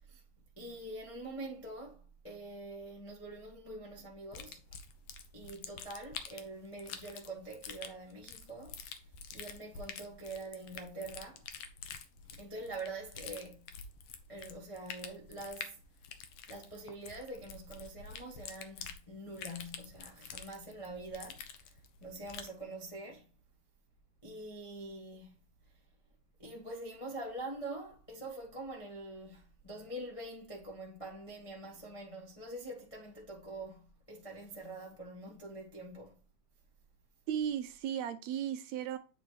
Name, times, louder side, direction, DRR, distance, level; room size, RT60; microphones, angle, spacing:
voice 1, 0.6-4.6 5.3-9.0 9.3-11.4 12.3-13.7 14.3-15.8 16.5-23.3 24.2-25.3 26.4-36.2, right 2 dB, 40° left, 0.4 m, -45 dB
sound 1, 4.3-22.6, left 6 dB, 70° left, 1.5 m, -48 dB
voice 2, 37.3-39.0, right 9 dB, 80° right, 1.7 m, -35 dB
8.7 x 4.2 x 3.0 m
omnidirectional pair, 3.4 m